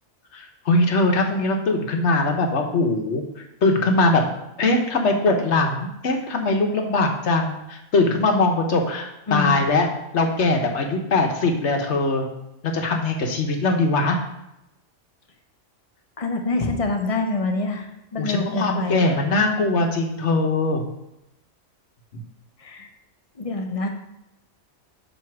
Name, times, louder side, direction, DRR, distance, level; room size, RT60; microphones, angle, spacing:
voice 1, 0.3-4.2 4.6-9.9 10.1-12.3 12.6-14.2 18.2-20.8, left 2 dB, 70° left, 3 dB, 1.3 m, -21 dB
voice 2, 9.3-9.6 16.2-19.1 22.6-22.9 23.3-23.9, left 2 dB, 35° left, 3 dB, 0.8 m, -26 dB
7.5 x 3.1 x 6.0 m, 0.88 s
omnidirectional pair, 1.2 m